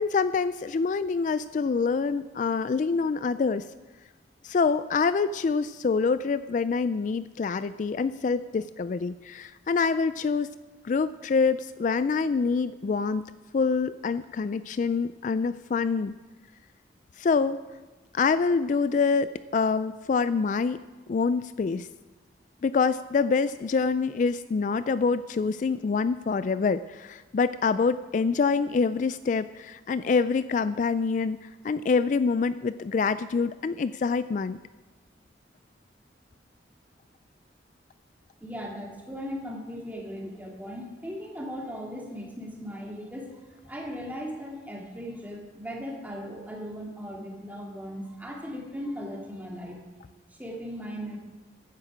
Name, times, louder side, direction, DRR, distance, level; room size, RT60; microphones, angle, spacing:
voice 1, 0.0-3.7 4.4-10.5 10.8-13.3 13.5-16.1 17.2-17.6 18.1-20.8 21.1-21.9 22.6-34.6, left 5 dB, 45° left, 14 dB, 0.3 m, -26 dB
voice 2, 38.4-49.8 50.3-51.2, equal, 10° right, -1 dB, 2.2 m, -38 dB
15.5 x 10.5 x 5.0 m, 1.2 s
head